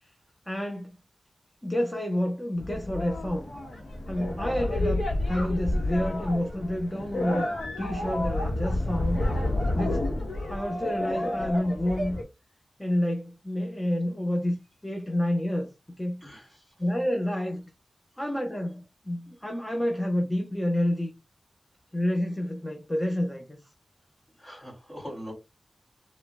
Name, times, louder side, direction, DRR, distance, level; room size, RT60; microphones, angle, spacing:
voice 1, 0.5-0.9 1.6-3.5 4.1-7.5 7.8-9.2 9.7-10.0 10.5-12.2 12.8-15.7 16.0-16.2 16.8-17.6 18.2-21.1 21.9-23.6, left 1 dB, 10° left, 0.7 m, -29 dB
sound 1, 2.6-12.2, left 1 dB, 85° left, 1.8 m, -30 dB
voice 2, 16.2-16.6 24.4-25.3, equal, 30° left, 2.8 m, -41 dB
6.8 x 3.1 x 2.3 m
wide cardioid pair, 95°, 0 cm